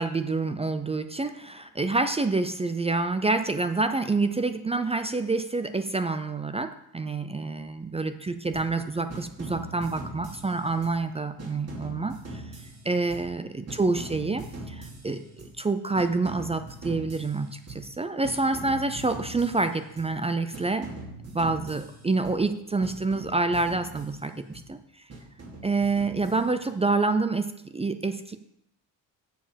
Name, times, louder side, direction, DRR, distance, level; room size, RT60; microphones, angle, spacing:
voice 1, 0.0-12.4 12.8-15.2 15.6-20.9 21.3-24.8 25.6-27.5 27.7-28.4, right 3 dB, 15° right, 9 dB, 0.4 m, -27 dB
sound 1, 8.5-8.8 9.1-11.0 11.4-13.4 13.7-15.6 15.9-18.0 18.2-20.2 20.5-22.5 22.8-24.7 25.1-26.8, right 2 dB, 40° right, 2.6 m, -42 dB
7.6 x 7.0 x 5.1 m, 0.76 s
cardioid pair, 130°, 37 cm